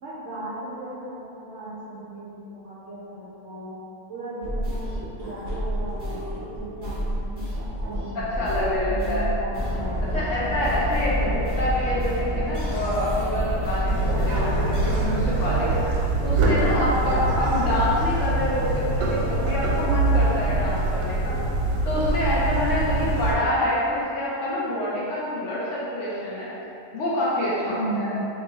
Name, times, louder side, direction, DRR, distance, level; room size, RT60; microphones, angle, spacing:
voice 1, 0.0-3.7 4.1-10.3 11.1-11.3 22.8-23.3 27.7-28.3, right 1 dB, 65° right, -8 dB, 0.7 m, -36 dB
sound 1, 4.4-15.0, equal, 30° right, 0.4 m, -30 dB
voice 2, 8.1-9.3 10.1-11.3 11.6-15.7 16.2-21.3 21.8-26.5 26.9-28.2, left 1 dB, 65° left, -7 dB, 0.9 m, -26 dB
sound 2, 9.5-15.0, equal, 35° left, 0.4 m, -30 dB
sound 3, 13.9-23.4, right 2 dB, 85° right, 1.1 m, -24 dB
2.8 x 2.6 x 3.8 m, 2.9 s
omnidirectional pair, 1.6 m